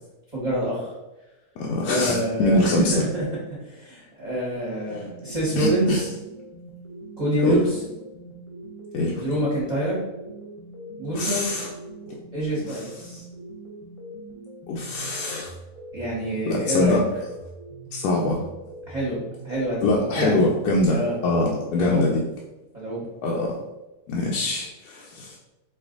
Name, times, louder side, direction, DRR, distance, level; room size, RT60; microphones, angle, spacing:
voice 1, 0.3-0.9 1.8-3.2 3.6-6.1 7.2-7.8 9.1-10.0 11.0-11.5 12.3-13.2 15.9-17.0 18.9-20.4 20.9-21.2 21.8-22.1 22.7-23.1, equal, 25° right, -7 dB, 1.1 m, -26 dB
voice 2, 1.6-2.9 5.6-6.0 7.4-7.6 8.9-9.2 11.1-11.7 12.1-12.2 12.6-12.9 14.7-15.5 16.5-17.1 17.9-18.4 19.8-22.2 23.2-23.6 24.1-25.4, left 2 dB, 80° left, -2 dB, 1.1 m, -24 dB
sound 1, 4.7-22.0, right 1 dB, 25° left, 0.9 m, -42 dB
4.4 x 2.5 x 3.7 m, 1.0 s
omnidirectional pair, 1.6 m